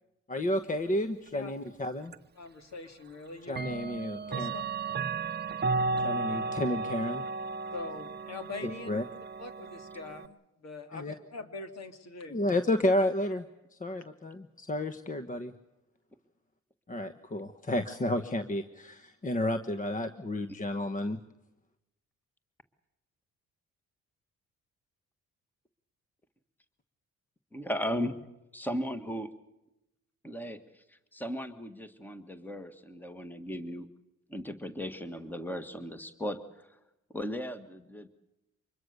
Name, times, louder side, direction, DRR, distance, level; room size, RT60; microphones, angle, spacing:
voice 1, 0.3-2.1 3.5-4.5 6.0-7.2 8.6-9.0 10.9-11.1 12.3-13.4 13.8-15.5 16.9-21.2, left 1 dB, 25° left, 9 dB, 1.2 m, -31 dB
Clock, 2.1-2.2 3.5-10.3, right 3 dB, 35° right, 0.8 m, -34 dB
voice 2, 2.4-3.6 4.3-4.6 7.7-8.9 9.4-12.4, left 3 dB, 60° left, 7 dB, 2.7 m, -43 dB
voice 3, 27.5-28.2 28.5-29.3 30.2-33.9 34.3-36.7 37.1-38.1, equal, 5° left, 10 dB, 1.7 m, -36 dB
25.0 x 21.5 x 6.8 m, 0.90 s
cardioid pair, 90°, 30 cm